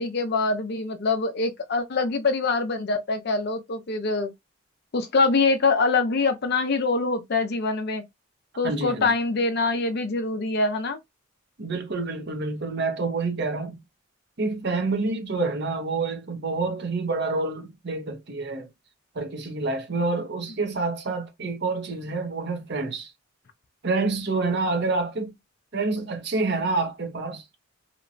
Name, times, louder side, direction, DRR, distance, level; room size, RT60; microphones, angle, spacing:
voice 1, 0.0-4.3 4.9-8.0 8.6-11.0, left 3 dB, 50° left, 0.5 m, -24 dB
voice 2, 8.6-9.1 11.6-13.8 14.4-18.7 19.1-23.1 23.8-25.3 25.7-27.6, right 3 dB, 50° right, 0.7 m, -28 dB
2.8 x 2.1 x 2.5 m
head